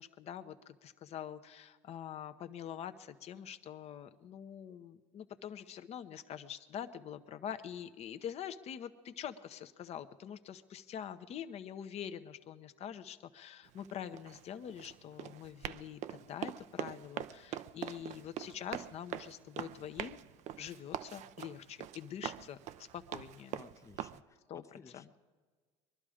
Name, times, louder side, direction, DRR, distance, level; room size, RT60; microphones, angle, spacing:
voice 1, 0.0-20.2 20.6-23.6 24.5-25.1, left 9 dB, 45° left, 11 dB, 0.8 m, -45 dB
Run, 13.7-24.2, right 11 dB, 55° right, 0.5 m, -44 dB
voice 2, 23.5-25.2, left 5 dB, 20° left, 11 dB, 0.6 m, -57 dB
22.0 x 11.5 x 5.0 m, 1.5 s
supercardioid pair, 95°, 15 cm